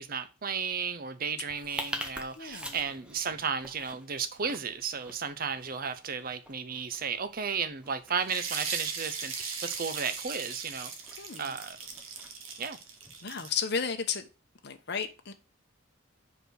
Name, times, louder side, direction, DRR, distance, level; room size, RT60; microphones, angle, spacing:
voice 1, 0.0-10.9 11.4-11.8 12.6-12.8, right 6 dB, 45° right, 0.7 m, -34 dB
sound 1, 1.4-13.6, equal, 5° right, 0.9 m, -46 dB
voice 2, 2.4-2.8 11.2-11.6 13.2-14.2 14.6-15.3, left 6 dB, 55° left, 0.9 m, -33 dB
sound 2, 8.2-13.7, right 5 dB, 85° right, 1.5 m, -38 dB
5.1 x 4.9 x 6.3 m
head